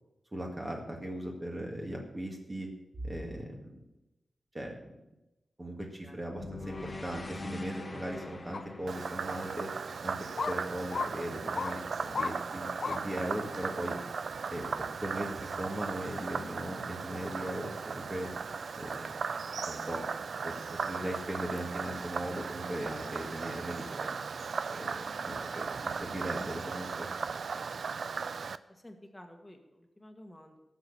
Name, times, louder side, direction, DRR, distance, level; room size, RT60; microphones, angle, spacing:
voice 1, 0.3-2.7 3.0-3.7 4.5-5.0 5.6-9.7 10.0-10.2 10.5-14.0 14.5-14.7 15.0-18.3 18.8-19.1 19.6-20.1 20.4-24.1 24.7-27.1, right 1 dB, 20° right, 0 dB, 2.0 m, -38 dB
sound 1, 6.4-10.6, left 2 dB, 25° left, 1.2 m, -43 dB
sound 2, 8.5-8.6 9.4-9.5 10.4-10.6 10.9-11.1 11.6-11.7 12.1-12.3 12.8-13.0 13.5-13.6, left 4 dB, 50° left, 0.7 m, -33 dB
Frog, 8.9-28.6, right 5 dB, 60° right, 0.5 m, -37 dB
voice 2, 27.7-28.0 28.7-30.6, left 1 dB, 10° left, 3 dB, 1.8 m, -52 dB
17.5 x 7.0 x 7.2 m, 0.96 s
wide cardioid pair, 155°, 0 cm